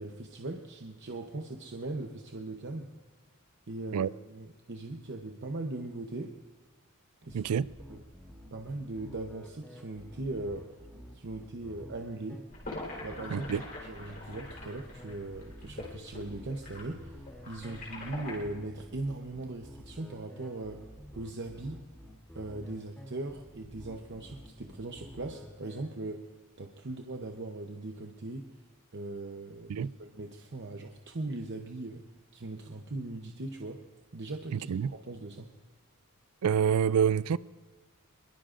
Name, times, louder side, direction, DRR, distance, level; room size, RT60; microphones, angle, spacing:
voice 1, 0.0-2.9 3.7-6.3 7.2-7.5 7.9-8.0 8.5-10.7 11.1-12.4 13.0-13.5 13.8-20.8 21.1-21.8 22.3-26.3 26.6-28.5 28.9-32.0 32.3-33.8 34.1-35.5, right 2 dB, 50° right, 0.8 m, -39 dB
sound 1, 7.3-25.8, equal, 5° left, 2.8 m, -50 dB
voice 2, 7.3-7.7 13.3-13.6 29.7-29.9 34.5-34.9 36.4-37.4, right 7 dB, 85° right, 0.4 m, -27 dB
sound 2, 12.5-18.4, left 2 dB, 40° left, 3.9 m, -44 dB
25.0 x 22.0 x 2.5 m
head